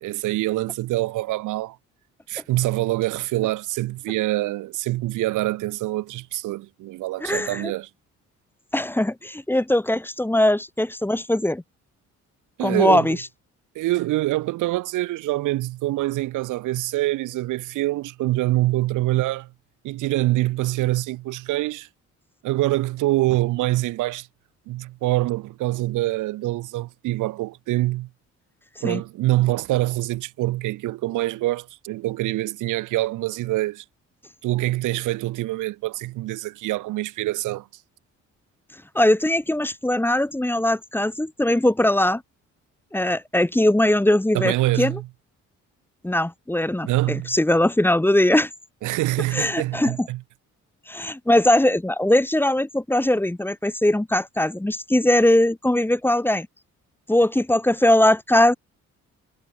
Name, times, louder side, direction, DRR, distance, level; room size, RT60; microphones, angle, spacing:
voice 1, 0.0-1.8 2.3-7.9 12.6-13.2 13.7-19.5 19.8-21.9 22.4-24.3 24.7-28.1 28.8-33.8 34.4-37.7 44.3-45.1 46.8-47.4 48.8-50.2, right 17 dB, 80° right, 0.7 m, -25 dB
voice 2, 7.2-7.7 8.7-11.6 12.6-13.2 28.8-29.0 38.9-42.2 42.9-44.9 46.0-48.5 49.3-50.1 50.9-56.5 57.1-58.5, left 1 dB, 5° left, 1.1 m, -20 dB
cardioid pair, 90°, 30 cm